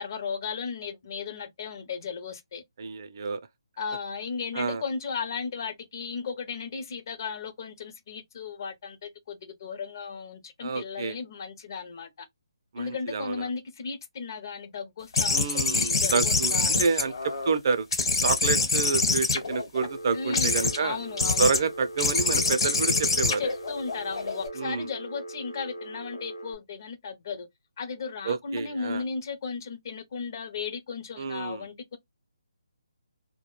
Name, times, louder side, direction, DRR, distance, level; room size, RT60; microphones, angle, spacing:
voice 1, 0.0-2.6 3.8-12.3 12.8-17.1 20.1-21.7 23.4-27.5 27.8-32.0, left 5 dB, 40° left, 0.5 m, -35 dB
voice 2, 2.8-3.4 4.5-4.8 10.6-11.2 12.7-13.5 15.3-17.9 18.2-21.0 21.4-23.4 24.6-24.9 28.2-29.0 31.2-31.6, right 5 dB, 45° right, 0.4 m, -28 dB
sound 1, 15.1-17.6 17.9-19.9 20.3-20.8 21.2-21.6 22.0-24.5, left 3 dB, 60° left, 1.0 m, -25 dB
Telephone, 19.8-26.5, right 1 dB, 90° left, 0.6 m, -40 dB
2.2 x 2.1 x 3.0 m
hypercardioid pair, 160°, 3 cm